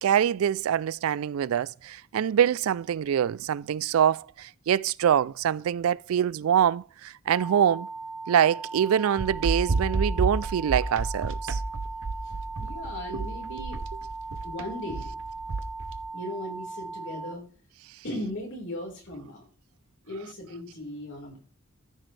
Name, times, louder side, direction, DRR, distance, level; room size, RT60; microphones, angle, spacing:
voice 1, 0.0-7.9 8.3-11.6 13.1-13.2, right 9 dB, 80° right, 0.3 m, -25 dB
sound 1, 7.3-17.3, right 3 dB, 5° right, 3.5 m, -38 dB
sound 2, 9.2-16.0, right 3 dB, 65° right, 0.7 m, -30 dB
voice 2, 12.6-13.8 14.4-15.1 16.1-17.5 18.0-19.4 20.0-21.4, left 1 dB, 60° left, 4.3 m, -37 dB
14.0 x 6.1 x 3.2 m
head